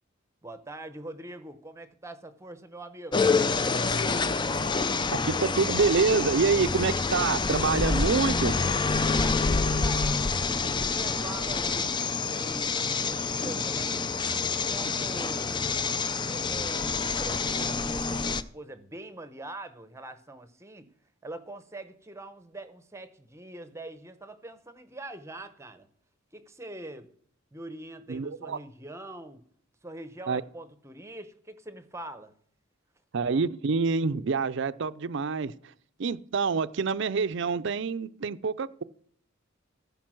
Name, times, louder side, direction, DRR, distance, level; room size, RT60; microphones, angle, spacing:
voice 1, 0.4-3.2 9.1-11.9 12.3-14.1 14.4-20.9 21.2-25.9 26.3-27.1 27.5-29.4 29.8-32.3, right 1 dB, 15° right, 0.7 m, -43 dB
sound 1, 3.1-18.4, left 4 dB, 20° left, 0.4 m, -27 dB
voice 2, 5.1-8.6 28.1-28.6 30.3-30.4 33.1-35.5 36.0-38.8, right 4 dB, 60° right, 0.5 m, -27 dB
15.0 x 5.4 x 6.2 m
head